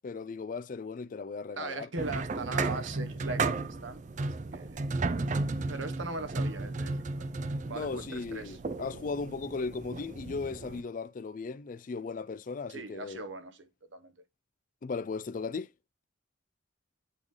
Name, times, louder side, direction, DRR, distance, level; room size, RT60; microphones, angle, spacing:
voice 1, 0.0-1.9 7.7-13.2 14.8-15.7, left 4 dB, 45° left, 0.4 m, -37 dB
voice 2, 1.6-3.5 3.8-4.8 5.7-7.3 7.7-8.6 12.7-14.1, right 3 dB, 75° right, 1.1 m, -40 dB
sound 1, 2.0-10.8, right 3 dB, 40° right, 0.4 m, -34 dB
8.2 x 3.7 x 3.2 m
head